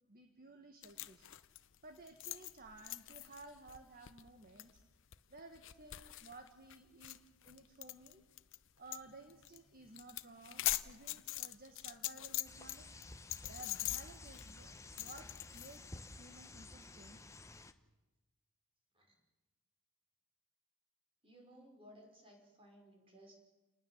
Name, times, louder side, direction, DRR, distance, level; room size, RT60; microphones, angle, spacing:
voice 1, 0.1-1.3 1.8-4.8 5.3-8.2 8.8-12.9 13.5-17.2, right 2 dB, 40° right, 6 dB, 1.6 m, -56 dB
sound 1, 0.8-8.6 8.9-9.0 9.3-9.6 9.9-12.8 13.0-15.8, left 15 dB, 55° left, 0.8 m, -42 dB
sound 2, 12.5-17.7, left 2 dB, 15° left, 0.9 m, -53 dB
voice 2, 21.2-23.3, equal, 25° right, 2 dB, 5.6 m, -59 dB
29.0 x 20.0 x 7.3 m, 1.1 s
head